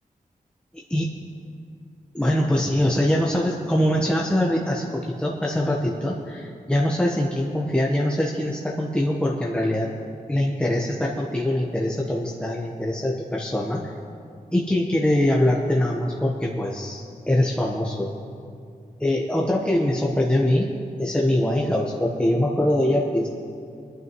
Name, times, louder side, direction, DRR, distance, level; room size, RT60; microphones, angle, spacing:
voice 1, 2.1-9.9 10.3-13.8 14.5-18.1 19.0-20.7 21.0-23.3, left 1 dB, 5° left, -2 dB, 1.0 m, -23 dB
21.5 x 11.0 x 3.1 m, 2.4 s
wide cardioid pair, 105°, 15 cm